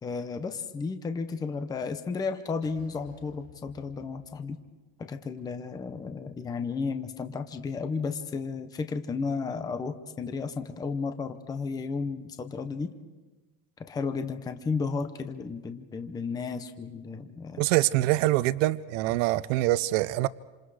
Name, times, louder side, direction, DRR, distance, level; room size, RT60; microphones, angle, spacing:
voice 1, 0.0-4.6 5.0-12.9 13.9-17.6, left 4 dB, 10° left, 0.7 m, -33 dB
sound 1, 2.6-5.0, left 2 dB, 85° left, 4.7 m, -55 dB
voice 2, 17.6-20.3, right 17 dB, 75° right, 0.7 m, -24 dB
28.0 x 27.0 x 4.9 m
cardioid pair, 180°, 38 cm